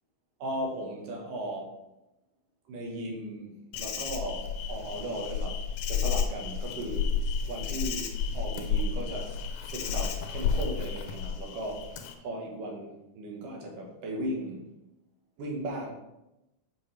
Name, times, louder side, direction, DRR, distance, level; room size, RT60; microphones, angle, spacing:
voice 1, 0.4-1.7 2.7-5.6 5.9-7.1 7.5-9.3 9.6-14.7 15.4-15.9, right 1 dB, 80° right, 0 dB, 2.9 m, -37 dB
Insect, 3.7-12.1, left 6 dB, 75° left, 2.0 m, -31 dB
8.2 x 5.9 x 3.3 m, 0.93 s
omnidirectional pair, 3.7 m